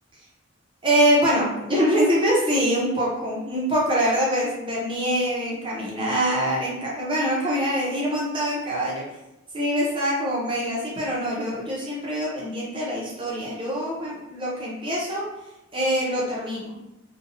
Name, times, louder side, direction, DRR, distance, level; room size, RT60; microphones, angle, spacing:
voice 1, 0.8-9.0 9.5-15.2 15.7-16.8, equal, 25° right, -5 dB, 0.6 m, -24 dB
2.7 x 2.2 x 2.6 m, 0.94 s
head